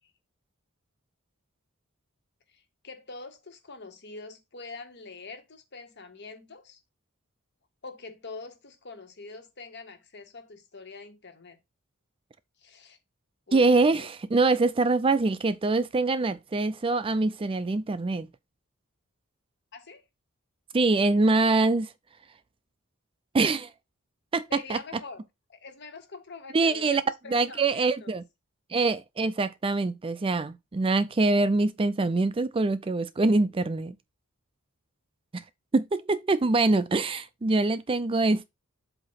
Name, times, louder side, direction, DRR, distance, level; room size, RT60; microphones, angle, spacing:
voice 1, 2.5-6.8 7.8-11.6 12.6-13.0 13.5-14.1 19.7-20.1 24.5-25.2 25.5-28.2 37.1-37.2, left 4 dB, 55° left, 1.6 m, -44 dB
voice 2, 13.5-18.3 20.7-21.9 23.3-23.7 24.3-24.8 26.5-27.0 27.3-28.2 28.7-33.9 35.3-35.4 35.7-38.4, right 3 dB, 25° right, 0.4 m, -24 dB
7.9 x 2.8 x 5.7 m
head